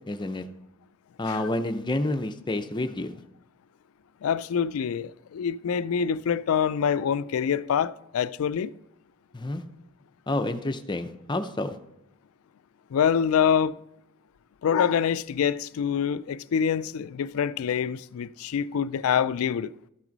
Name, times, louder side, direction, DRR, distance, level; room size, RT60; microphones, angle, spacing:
voice 1, 0.1-0.5 1.2-3.2 9.3-9.6 10.3-11.8, left 2 dB, 20° left, 0.6 m, -29 dB
voice 2, 4.2-8.7 12.9-13.8 14.6-19.7, left 7 dB, 70° left, 0.3 m, -25 dB
12.5 x 6.0 x 4.0 m
head